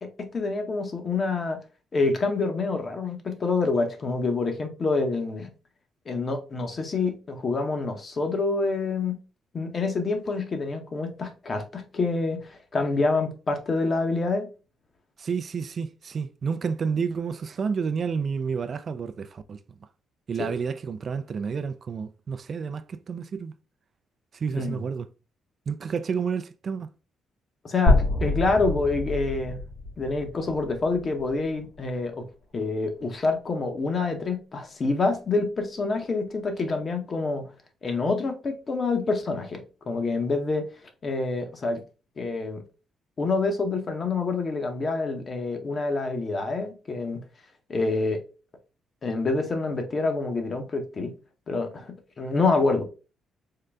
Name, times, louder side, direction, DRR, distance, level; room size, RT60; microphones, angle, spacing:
voice 1, 0.0-1.6 1.9-5.5 6.1-9.2 9.5-14.5 20.4-20.5 24.6-24.8 27.6-29.6 30.0-32.3 32.5-37.5 37.8-40.7 41.0-41.8 42.2-42.6 43.2-47.2 47.7-48.2 49.0-51.1 51.5-52.8, left 3 dB, 40° left, 0.8 m, -27 dB
voice 2, 15.2-19.6 20.3-23.5 24.3-25.1 25.7-26.9, right 6 dB, 45° right, 0.3 m, -30 dB
sound 1, 27.9-31.8, left 2 dB, 60° left, 1.7 m, -26 dB
3.7 x 2.2 x 3.3 m
cardioid pair, 90°, 0 cm